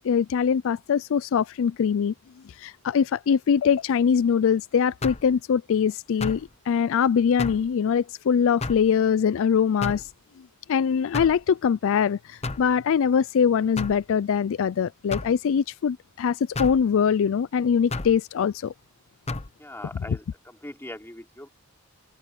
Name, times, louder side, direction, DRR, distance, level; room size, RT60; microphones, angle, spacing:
voice 1, 0.0-2.1 2.6-10.1 10.7-18.7, left 7 dB, 65° left, 0.4 m, -23 dB
sound 1, 5.0-5.3 6.2-6.5 7.4-7.7 8.6-8.9 9.8-10.1 11.1-11.4 12.4-12.7 13.8-14.0 15.1-15.4 16.6-16.8 17.9-18.2 19.3-19.5, left 3 dB, 30° left, 0.8 m, -32 dB
voice 2, 19.6-21.5, left 1 dB, 10° left, 4.2 m, -41 dB
head